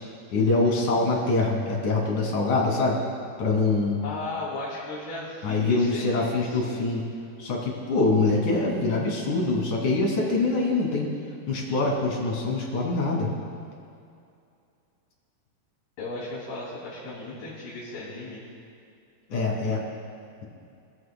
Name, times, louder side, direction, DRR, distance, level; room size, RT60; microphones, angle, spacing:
voice 1, 0.3-3.0 3.4-4.0 5.4-7.1 7.4-11.1 11.5-13.3 19.3-19.8, left 3 dB, 55° left, -2 dB, 3.7 m, -24 dB
voice 2, 4.0-6.8 16.0-18.4, left 2 dB, 75° left, -9 dB, 4.7 m, -36 dB
25.0 x 16.0 x 2.2 m, 2.5 s
omnidirectional pair, 4.6 m